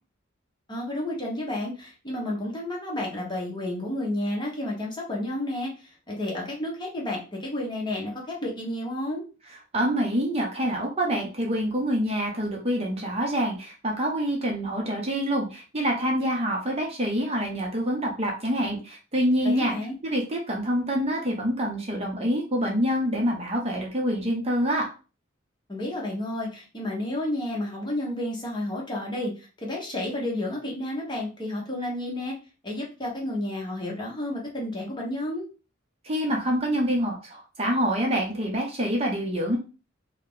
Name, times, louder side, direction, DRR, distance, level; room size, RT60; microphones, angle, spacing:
voice 1, 0.7-9.2 19.4-19.9 25.7-32.3 32.6-35.5, left 1 dB, 20° left, -2 dB, 1.2 m, -31 dB
voice 2, 9.7-19.7 20.0-24.8 36.0-39.6, equal, 30° right, 0 dB, 0.8 m, -26 dB
3.0 x 2.8 x 3.8 m, 0.34 s
head